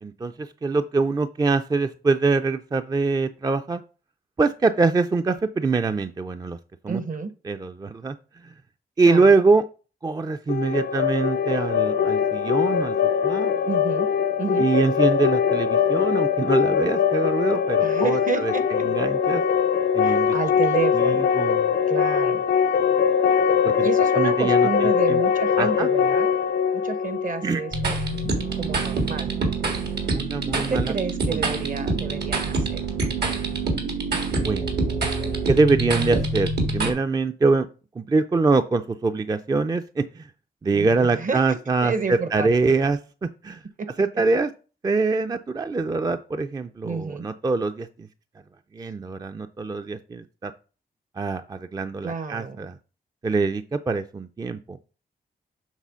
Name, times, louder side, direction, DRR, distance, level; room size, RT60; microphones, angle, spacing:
voice 1, 0.0-3.8 4.4-6.6 6.8-7.0 7.5-8.1 8.4-8.5 9.0-9.6 10.0-13.0 13.2-13.5 14.6-18.5 18.8-19.4 19.9-20.3 20.9-21.7 23.6-23.9 24.1-25.2 25.6-25.9 27.4-27.6 30.1-30.9 31.3-31.5 34.3-34.7 35.4-37.7 38.0-40.3 40.6-43.6 44.0-44.5 44.8-48.1 48.7-50.5 51.2-52.7 53.2-54.9, right 3 dB, 25° right, 9 dB, 0.4 m, -24 dB
voice 2, 6.9-7.3 9.1-9.3 13.6-14.1 14.4-14.7 17.8-18.9 20.0-21.3 21.9-22.4 23.8-26.3 26.7-29.3 30.5-32.8 40.7-42.5 43.8-43.9 46.8-47.3 52.0-52.6, right 5 dB, 55° right, 12 dB, 0.9 m, -30 dB
sound 1, 10.5-28.3, left 7 dB, 85° left, 0.5 m, -22 dB
sound 2, 27.7-36.9, right 3 dB, 80° right, 1.7 m, -26 dB
7.4 x 3.4 x 5.6 m, 0.36 s
cardioid pair, 85°, 17 cm